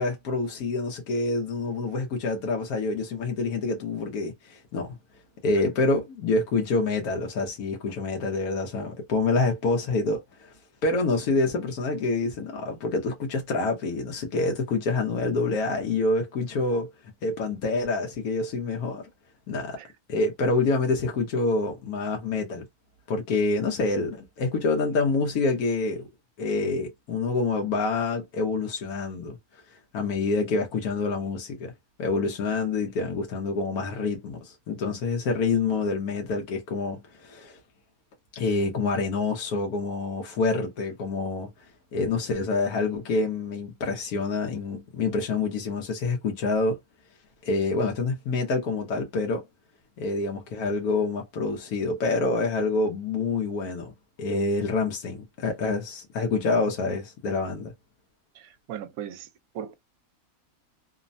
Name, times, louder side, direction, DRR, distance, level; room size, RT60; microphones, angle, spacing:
voice 1, 0.0-5.0 5.4-10.5 10.8-16.9 17.2-19.1 19.5-19.8 20.1-22.7 23.1-26.1 26.4-29.4 29.9-31.7 32.0-37.6 38.3-41.5 41.9-46.8 47.4-49.5 50.0-53.9 54.2-57.7, left 3 dB, 85° left, 1.2 m, -27 dB
voice 2, 58.3-59.3 59.5-59.7, right 9 dB, 75° right, 1.0 m, -38 dB
3.1 x 2.0 x 2.5 m
omnidirectional pair, 1.5 m